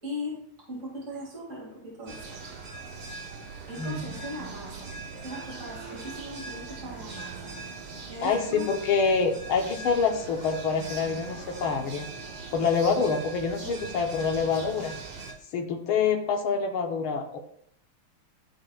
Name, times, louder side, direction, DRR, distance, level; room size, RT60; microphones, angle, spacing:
voice 1, 0.0-0.4 0.7-2.4 3.7-7.5 8.1-8.7 13.6-13.7, left 1 dB, 35° right, -5 dB, 2.7 m, -39 dB
sound 1, 2.1-15.3, right 4 dB, 85° right, 2.2 m, -40 dB
voice 2, 8.2-12.1 12.5-14.9 15.5-17.4, left 5 dB, 75° left, 2 dB, 1.9 m, -26 dB
13.5 x 4.9 x 2.4 m, 0.68 s
omnidirectional pair, 2.4 m